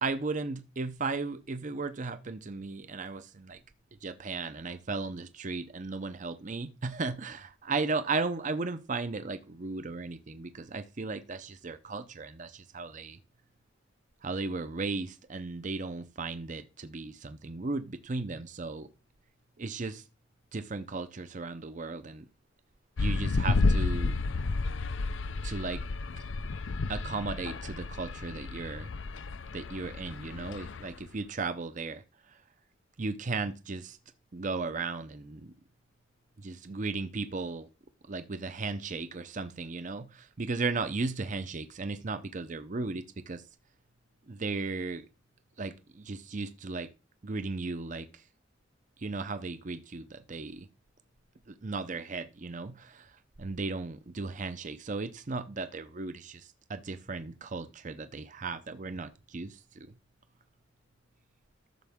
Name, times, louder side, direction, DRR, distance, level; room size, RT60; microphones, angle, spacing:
voice 1, 0.0-3.6 4.0-13.2 14.2-18.9 19.6-20.0 20.5-22.3 23.0-24.2 25.4-25.8 26.9-28.9 29.5-32.4 33.0-34.0 34.3-35.5 36.4-37.7 38.1-43.4 44.3-45.1 45.6-46.9 47.2-48.2 49.0-50.7 51.5-59.9, right 3 dB, 40° right, 0.6 m, -36 dB
sound 1, 23.0-31.0, left 3 dB, 75° left, 0.6 m, -31 dB
13.5 x 6.8 x 3.6 m
head